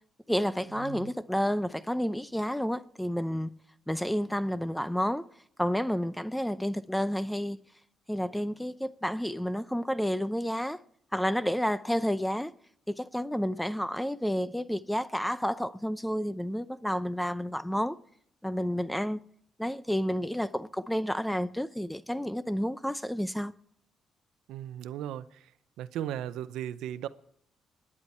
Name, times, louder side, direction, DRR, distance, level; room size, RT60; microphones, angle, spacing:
voice 1, 0.3-3.5 3.9-5.3 5.6-7.6 8.1-10.8 11.1-12.5 12.9-18.0 18.4-19.2 19.6-23.5, equal, 5° left, 0.6 m, -30 dB
voice 2, 0.8-1.1 24.5-25.3 25.8-27.1, right 11 dB, 85° right, 0.6 m, -36 dB
27.0 x 9.9 x 4.3 m
cardioid pair, 90°, 0 cm